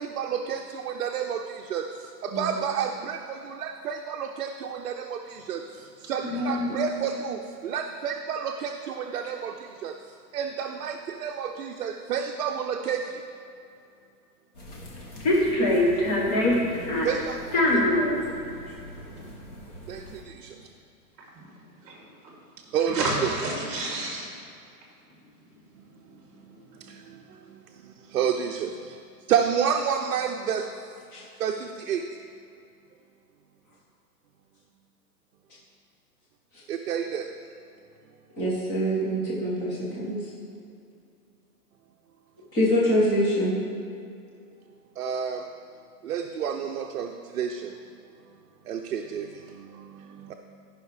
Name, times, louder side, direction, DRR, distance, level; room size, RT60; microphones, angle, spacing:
voice 1, 0.0-1.4 1.7-1.8 2.2-4.5 4.8-5.0 5.5-5.6 6.1-7.4 7.6-9.5 9.8-9.9 10.3-11.0 11.2-13.0 17.0-17.4 19.9-20.0 22.7-23.1 28.1-28.7 29.3-30.6 31.4-31.6 31.9-32.0 36.7-37.2 45.0-45.4 46.1-47.1 47.4-47.5 48.7-49.2, right 8 dB, 60° right, 3 dB, 0.6 m, -28 dB
voice 2, 6.2-6.7 21.3-21.5 21.8-22.1 22.9-24.3 26.0-26.1 26.5-26.6, right 1 dB, 25° right, -2 dB, 2.3 m, -30 dB
sound 1, 14.6-20.1, left 1 dB, 25° left, 1.0 m, -24 dB
voice 3, 16.6-17.1 31.1-31.2 38.4-40.2 42.5-43.5, equal, 10° left, -6 dB, 0.6 m, -25 dB
14.0 x 5.6 x 3.3 m, 2.6 s
hypercardioid pair, 165°, 48 cm